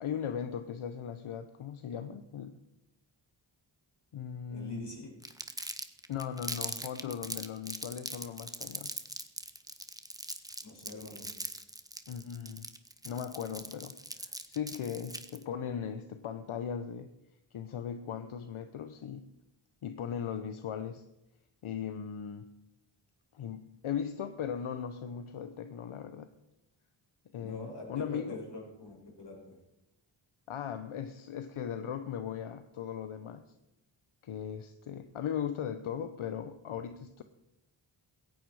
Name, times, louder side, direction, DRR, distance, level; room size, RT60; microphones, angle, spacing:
voice 1, 0.0-2.6 4.1-5.1 6.1-8.9 12.1-12.7 13.0-17.1 17.5-19.3 19.8-21.0 21.6-22.5 23.3-26.3 27.3-28.4 30.5-33.4 34.2-37.2, left 8 dB, 85° left, 10 dB, 1.0 m, -38 dB
voice 2, 4.5-5.1 10.6-11.3 27.4-29.6, left 2 dB, 55° left, -1 dB, 7.4 m, -44 dB
Crumpling crinkling, 5.2-15.4, right 1 dB, 5° right, 1.6 m, -41 dB
17.5 x 15.0 x 4.8 m, 0.92 s
cardioid pair, 45°, 48 cm